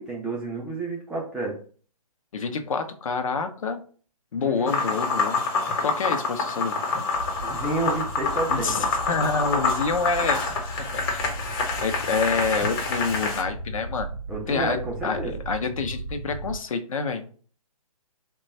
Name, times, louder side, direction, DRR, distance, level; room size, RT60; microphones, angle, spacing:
voice 1, 0.0-1.6 4.4-4.7 7.4-8.9 14.3-15.3, right 2 dB, 5° right, -4 dB, 0.3 m, -30 dB
voice 2, 2.3-3.8 4.3-5.5 5.8-6.8 8.5-10.4 10.9-11.3 11.8-14.1 14.5-14.8 15.0-17.3, left 4 dB, 60° left, 7 dB, 0.6 m, -27 dB
sound 1, 4.7-13.4, left 4 dB, 40° left, 1.0 m, -27 dB
sound 2, 7.1-16.6, right 2 dB, 85° right, 0.6 m, -36 dB
3.2 x 2.3 x 4.1 m, 0.42 s
figure-of-eight pair, 135°, 19 cm